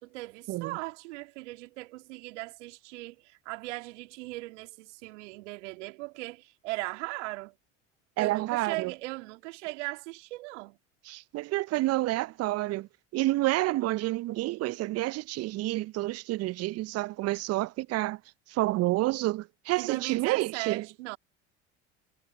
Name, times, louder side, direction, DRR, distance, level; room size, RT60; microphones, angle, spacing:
voice 1, 0.0-7.5 8.2-10.8 19.8-21.2, right 22 dB, 70° right, 2.2 m, -38 dB
voice 2, 8.2-8.9 11.0-18.2 18.5-20.9, right 18 dB, 40° right, 0.6 m, -29 dB
hypercardioid pair, 70°, 37 cm